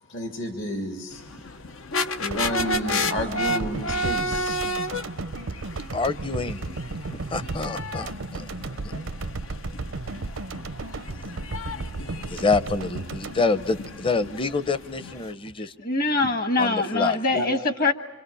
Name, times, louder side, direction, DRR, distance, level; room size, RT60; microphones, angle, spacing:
voice 1, 0.1-1.2 2.1-4.6 17.3-17.5, equal, 70° left, 4 dB, 2.4 m, -30 dB
sound 1, 1.1-15.3, left 1 dB, 85° left, 1.0 m, -33 dB
sound 2, 2.3-14.5 14.8-14.9, right 3 dB, 90° right, 0.7 m, -34 dB
voice 2, 5.9-6.7 7.1-8.5 8.8-8.9 12.3-15.7 16.6-17.2, left 3 dB, 25° left, 14 dB, 0.7 m, -27 dB
voice 3, 15.6-17.9, left 3 dB, 45° left, 9 dB, 1.5 m, -24 dB
26.5 x 26.0 x 7.0 m, 1.2 s
head